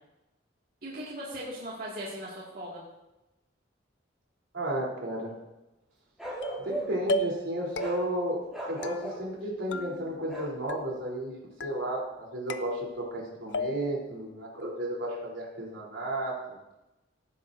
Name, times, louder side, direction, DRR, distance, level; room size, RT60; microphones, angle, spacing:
voice 1, 0.8-2.8, equal, 50° right, -5 dB, 2.3 m, -38 dB
voice 2, 4.5-5.3 6.6-16.6, right 1 dB, 85° right, -3 dB, 3.6 m, -33 dB
Bark, 6.2-7.1 7.8-8.0 8.5-9.3 10.3-10.6, right 1 dB, 5° right, 2.8 m, -37 dB
sound 1, 6.4-6.7 7.1-7.5 7.8-8.3 8.8-9.4 9.7-10.4 10.7-11.2 11.6-12.1 12.5-13.2 13.5-14.1, left 1 dB, 70° left, 0.6 m, -35 dB
17.0 x 9.2 x 2.7 m, 0.98 s
head